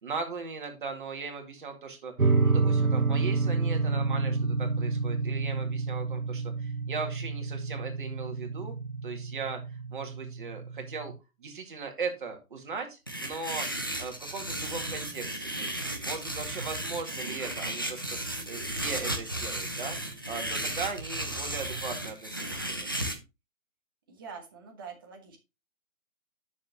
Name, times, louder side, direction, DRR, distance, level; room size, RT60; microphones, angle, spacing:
voice 1, 0.0-8.8 9.0-11.1 11.4-13.7 14.0-15.8 16.0-20.0 20.3-23.0, right 4 dB, 35° right, 4 dB, 2.1 m, -38 dB
sound 1, 2.2-11.2, right 4 dB, 85° right, 1.1 m, -29 dB
sound 2, 13.1-23.1, right 1 dB, 15° left, 0.5 m, -34 dB
voice 2, 24.1-25.4, right 5 dB, 15° right, 3 dB, 1.1 m, -45 dB
10.0 x 6.5 x 2.9 m, 0.26 s
figure-of-eight pair, 145°, 41 cm